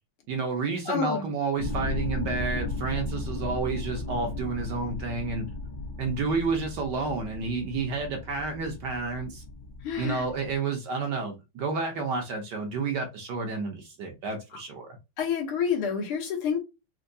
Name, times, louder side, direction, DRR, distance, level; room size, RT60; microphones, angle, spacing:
voice 1, 0.3-5.5 6.0-9.4 10.0-14.9, right 4 dB, 65° right, 1.1 m, -30 dB
voice 2, 0.9-1.3 9.8-10.2 15.2-16.6, left 6 dB, 80° left, 1.9 m, -28 dB
sound 1, 1.6-10.6, left 2 dB, 65° left, 1.2 m, -36 dB
4.4 x 2.2 x 2.6 m
omnidirectional pair, 2.4 m